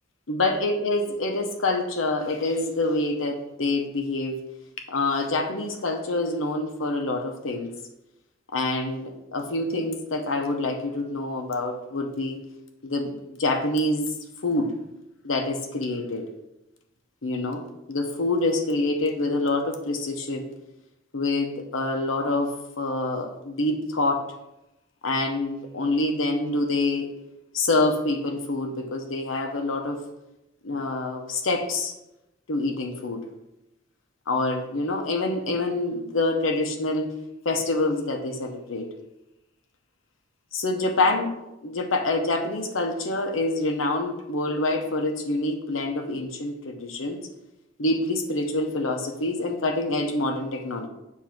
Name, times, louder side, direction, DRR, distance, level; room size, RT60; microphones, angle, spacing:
voice 1, 0.3-4.4 4.9-7.7 8.5-12.4 12.8-13.1 13.4-14.1 14.4-14.7 15.2-16.2 17.2-17.6 17.9-20.5 21.1-24.3 25.0-27.1 27.5-30.0 30.6-31.9 32.5-33.3 34.3-37.1 37.4-38.9 40.5-41.3 41.6-47.2 47.8-50.9, left 2 dB, 75° left, 4 dB, 0.9 m, -26 dB
7.2 x 2.8 x 5.9 m, 0.93 s
head